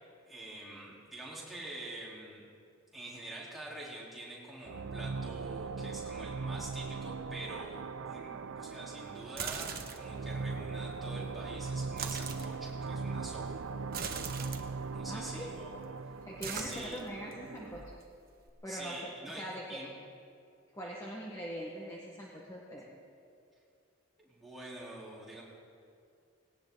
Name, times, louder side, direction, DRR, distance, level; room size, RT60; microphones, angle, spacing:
voice 1, 0.3-2.4 2.9-13.6 14.9-15.8 16.5-17.0 18.7-19.9 24.2-25.4, right 1 dB, ahead, -8 dB, 3.9 m, -46 dB
sound 1, 4.6-18.0, right 4 dB, 80° right, 0.5 m, -40 dB
sound 2, 9.2-10.1 11.8-12.5 13.9-14.6 15.4-17.3 17.7-18.5, right 6 dB, 45° right, 1.2 m, -40 dB
voice 2, 15.1-15.5 16.2-17.8 18.6-19.1 19.4-19.8 20.7-22.9, equal, 15° left, -4 dB, 1.6 m, -42 dB
19.5 x 18.0 x 4.0 m, 2.4 s
head